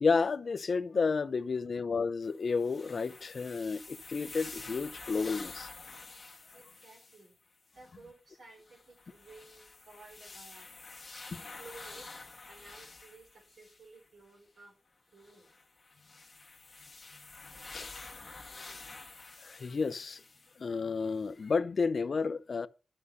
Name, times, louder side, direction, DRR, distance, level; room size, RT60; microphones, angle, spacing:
voice 1, 0.0-5.7 11.3-11.4 17.7-17.9 19.4-20.2 20.6-22.7, left 4 dB, 45° left, 0.6 m, -31 dB
sound 1, 2.2-7.3 7.7-7.9 8.6-14.0 15.2-20.6 21.1-21.2, left 3 dB, 20° left, 1.9 m, -49 dB
voice 2, 6.5-10.7 11.6-12.1 12.5-14.8 15.0-15.5, right 3 dB, 65° right, 3.9 m, -55 dB
12.0 x 6.4 x 5.5 m
wide cardioid pair, 175°, 0 cm